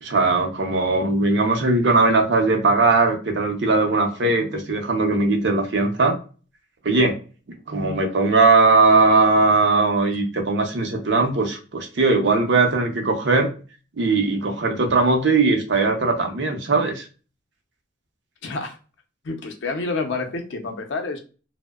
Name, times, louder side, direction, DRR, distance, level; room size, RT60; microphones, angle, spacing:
voice 1, 0.0-6.2 6.8-7.2 7.7-13.5 14.0-17.1, right 3 dB, 65° right, 4 dB, 0.6 m, -19 dB
voice 2, 18.4-18.8 19.2-21.2, left 3 dB, 65° left, 4 dB, 0.5 m, -28 dB
2.6 x 2.0 x 2.2 m, 0.35 s
head